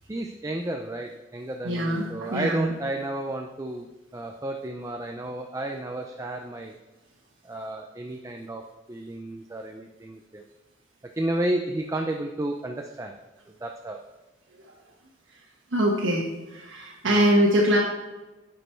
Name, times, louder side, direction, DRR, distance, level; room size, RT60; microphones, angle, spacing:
voice 1, 0.1-6.7 7.4-8.6 8.9-10.4 11.2-13.2 13.6-14.0 17.1-17.3, right 1 dB, 15° right, 3 dB, 0.5 m, -32 dB
voice 2, 1.6-2.6 15.7-17.8, equal, 85° right, -4 dB, 1.3 m, -23 dB
10.5 x 5.3 x 4.4 m, 1.1 s
head